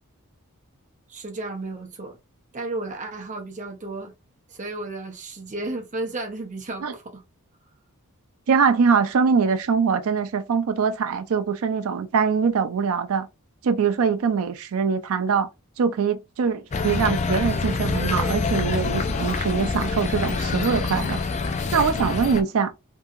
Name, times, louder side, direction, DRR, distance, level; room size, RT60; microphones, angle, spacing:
voice 1, 1.1-2.2 2.5-4.1 4.5-7.2, right 2 dB, 35° right, 0.7 m, -33 dB
voice 2, 8.5-13.3 13.6-15.5 15.8-21.2 21.7-22.7, right 6 dB, 70° right, 0.4 m, -23 dB
sound 1, 16.7-22.4, left 4 dB, 30° left, 0.3 m, -26 dB
2.7 x 2.7 x 2.4 m
head